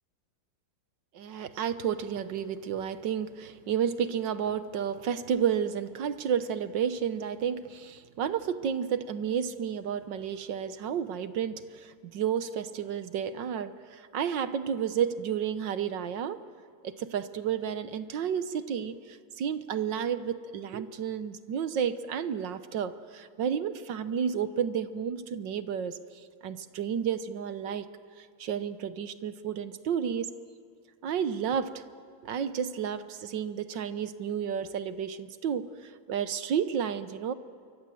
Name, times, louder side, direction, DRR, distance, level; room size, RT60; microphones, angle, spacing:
voice 1, 1.1-16.4 16.8-26.0 26.4-27.9 28.2-30.3 31.0-31.8 32.2-37.3, right 8 dB, 65° right, 12 dB, 1.6 m, -31 dB
27.5 x 24.0 x 7.7 m, 2.1 s
omnidirectional pair, 2.3 m